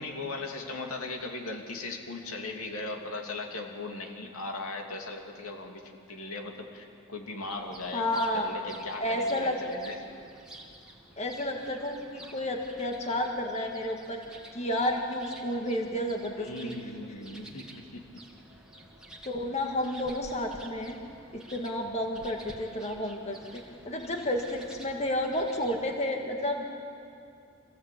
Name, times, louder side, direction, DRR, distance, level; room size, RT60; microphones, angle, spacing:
voice 1, 0.0-9.9 16.4-18.0, left 2 dB, 90° left, 2 dB, 2.6 m, -38 dB
sound 1, 7.5-26.0, right 1 dB, 5° right, 1.9 m, -50 dB
voice 2, 7.9-8.5 9.0-9.6 11.2-14.2 14.5-16.7 19.2-21.0 21.3-26.6, left 1 dB, 30° left, 2 dB, 1.7 m, -31 dB
25.5 x 15.5 x 8.5 m, 2.5 s
head